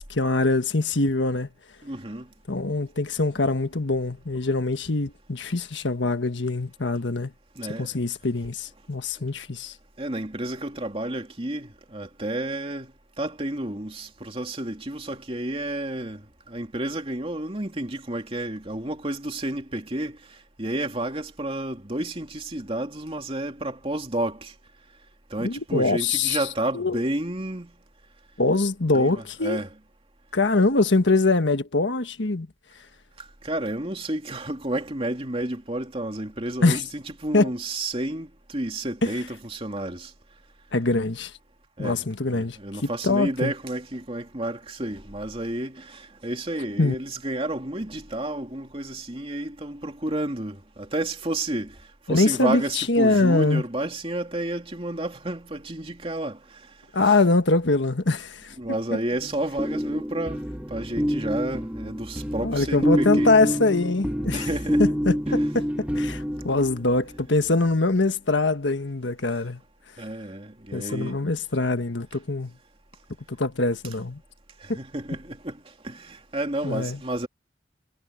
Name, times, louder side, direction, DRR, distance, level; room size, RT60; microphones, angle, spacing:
voice 1, 0.0-1.5 2.5-7.3 7.8-9.7 25.4-26.4 26.7-27.0 28.4-29.6 30.3-32.5 36.6-36.8 37.3-37.5 40.7-41.3 41.8-43.5 46.8-46.9 52.1-53.6 56.9-58.5 62.4-64.5 64.8-65.6 65.9-69.6 70.7-72.5 73.3-74.2 74.7-74.8 76.6-77.0, left 3 dB, 80° left, 1.5 m, -23 dB
voice 2, 1.8-2.3 7.6-7.9 10.0-12.9 13.2-20.2 20.6-24.5 25.3-27.7 28.9-29.7 33.2-40.1 41.8-42.0 42.3-51.7 52.1-56.4 57.1-57.2 58.6-60.4 60.7-63.6 64.3-64.9 65.3-65.4 70.0-71.2 74.6-75.6 75.8-77.3, right 1 dB, 30° right, 2.8 m, -31 dB
sound 1, 59.2-67.2, equal, 10° right, 1.1 m, -27 dB
head